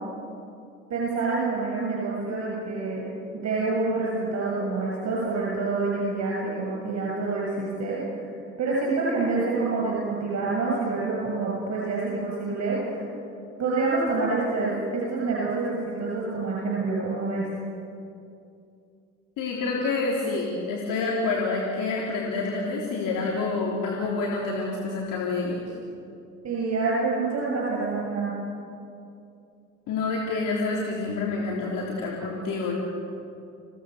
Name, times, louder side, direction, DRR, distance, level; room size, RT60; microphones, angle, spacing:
voice 1, 0.9-3.1 3.3-8.0 8.6-13.0 13.6-17.5 26.4-28.3, right 3 dB, 45° right, -4 dB, 7.5 m, -27 dB
voice 2, 19.4-25.6 29.9-32.7, left 3 dB, 60° left, -3 dB, 3.6 m, -28 dB
27.0 x 17.5 x 6.9 m, 2.6 s
hypercardioid pair, 55°, 37 cm